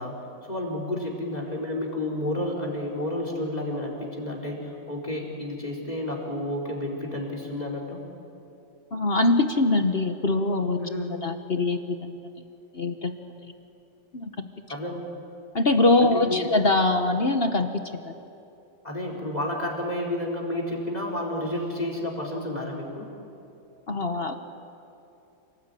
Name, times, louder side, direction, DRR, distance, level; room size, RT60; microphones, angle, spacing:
voice 1, 0.0-8.0 10.8-11.1 14.7-15.1 16.0-16.5 18.8-23.1, left 1 dB, 20° left, 0 dB, 4.3 m, -31 dB
voice 2, 8.9-10.8 11.2-12.4 12.7-13.1 13.4-13.5 14.1-14.5 15.5-18.1 23.9-24.3, left 2 dB, 40° left, 7 dB, 0.9 m, -23 dB
28.5 x 19.0 x 9.2 m, 2.8 s
omnidirectional pair, 2.3 m